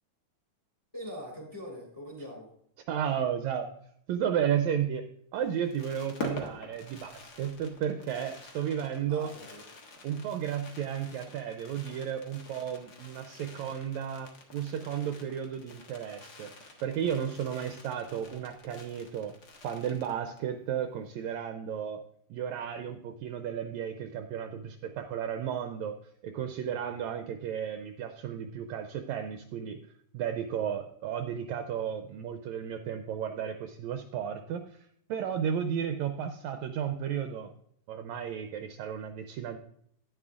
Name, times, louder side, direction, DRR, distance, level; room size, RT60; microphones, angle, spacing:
voice 1, 0.9-2.5 9.1-9.6, equal, 5° left, 1 dB, 1.8 m, -42 dB
voice 2, 2.9-3.7 4.1-5.0 5.3-9.3 10.0-19.3 19.6-22.0 22.3-25.9 26.2-29.8 30.1-37.5 37.9-39.6, right 9 dB, 80° right, 6 dB, 1.7 m, -33 dB
Fireworks, 5.4-20.5 20.8-20.9 21.1-21.4, left 2 dB, 65° left, 1.0 m, -47 dB
10.5 x 9.9 x 2.4 m, 0.69 s
omnidirectional pair, 3.7 m